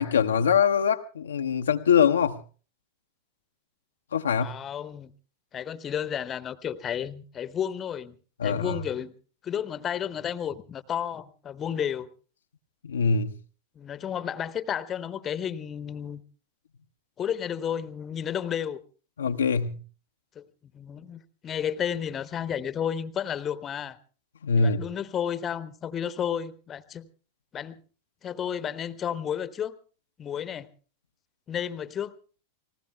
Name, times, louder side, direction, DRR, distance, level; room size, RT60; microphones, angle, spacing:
voice 1, 0.0-2.4 4.1-4.6 8.4-8.8 12.8-13.4 19.2-19.8 24.4-24.8, left 6 dB, 70° left, 5 dB, 0.8 m, -23 dB
voice 2, 4.4-5.1 5.5-8.2 8.4-9.1 9.4-12.1 13.8-16.2 17.2-18.8 20.4-20.5 20.7-24.0 24.6-27.1 27.5-27.8 28.2-29.7 30.2-30.7 31.5-32.1, left 9 dB, 25° left, 15 dB, 1.0 m, -32 dB
30.0 x 19.5 x 2.3 m, 0.38 s
figure-of-eight pair, 90°, 0 cm